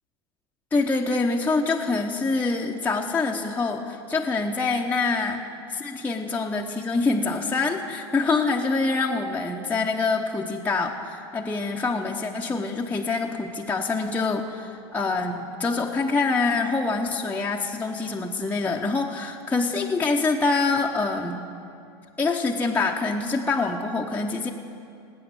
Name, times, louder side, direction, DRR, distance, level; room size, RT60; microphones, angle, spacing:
voice 1, 0.7-5.4 5.7-21.4 22.2-24.5, left 3 dB, 10° left, -1 dB, 1.0 m, -25 dB
18.5 x 8.6 x 7.0 m, 2.5 s
hypercardioid pair, 90°, 14 cm